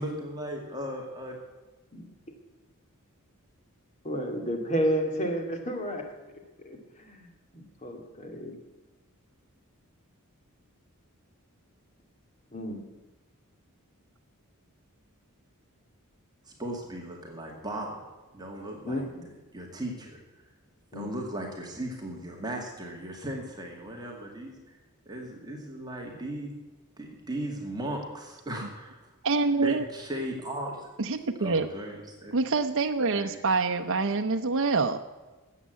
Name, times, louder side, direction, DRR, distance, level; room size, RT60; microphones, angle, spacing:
voice 1, 0.0-1.3 16.4-18.1 18.3-20.2 20.9-24.5 25.1-26.5 27.0-29.1 29.6-30.9 31.4-32.3 33.1-33.4, right 1 dB, 20° right, 0 dB, 2.3 m, -37 dB
voice 2, 4.0-6.0 6.6-7.3 7.5-8.5 12.5-12.8 18.8-19.2 20.9-21.1, equal, 35° left, 3 dB, 2.4 m, -31 dB
voice 3, 29.2-29.8 31.0-31.7 32.3-35.0, right 3 dB, 65° right, 5 dB, 0.7 m, -26 dB
13.5 x 8.5 x 9.4 m, 1.2 s
head